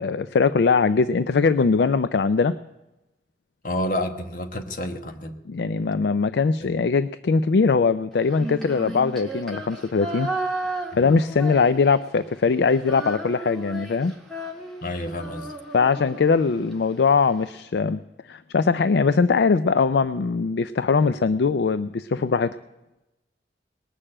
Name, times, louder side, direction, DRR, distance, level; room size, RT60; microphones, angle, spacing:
voice 1, 0.0-2.5 5.5-10.3 11.0-14.1 15.7-18.0 18.3-22.6, left 4 dB, 65° left, 14 dB, 0.4 m, -21 dB
voice 2, 3.6-5.3 10.9-11.1 14.8-15.5, left 1 dB, 50° left, 7 dB, 1.2 m, -29 dB
Female singing, 8.3-12.2 12.5-16.7, right 2 dB, ahead, 1.7 m, -34 dB
19.5 x 6.7 x 8.7 m, 1.0 s
head